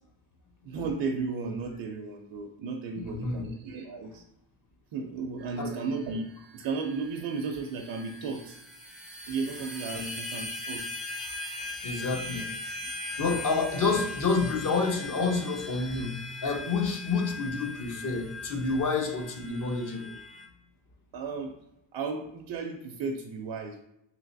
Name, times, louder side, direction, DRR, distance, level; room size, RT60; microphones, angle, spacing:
voice 1, 0.6-4.2 4.9-8.6 9.3-11.0 13.2-13.3 21.1-21.5 21.9-23.8, right 4 dB, 65° right, 3 dB, 0.5 m, -34 dB
voice 2, 3.0-3.4 5.6-5.7 9.9-10.1 11.8-12.5 13.1-16.1 16.4-20.1, left 4 dB, 40° left, 2 dB, 0.6 m, -29 dB
sound 1, 5.4-20.5, left 2 dB, ahead, 0.3 m, -40 dB
3.1 x 2.8 x 2.6 m, 0.84 s
cardioid pair, 130°, 49 cm